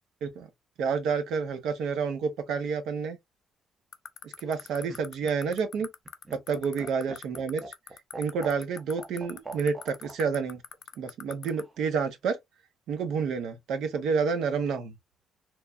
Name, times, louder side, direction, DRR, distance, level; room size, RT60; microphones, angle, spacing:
voice 1, 0.8-3.2 4.2-5.9 6.3-7.6 8.2-10.6 11.0-12.4 12.9-14.9, right 5 dB, 70° right, 0.6 m, -29 dB
sound 1, 3.9-11.6, left 8 dB, 45° left, 0.4 m, -39 dB
Laughter, 4.5-10.2 11.5-12.1, right 3 dB, 20° right, 0.5 m, -44 dB
3.0 x 2.2 x 2.3 m
cardioid pair, 165°, 0 cm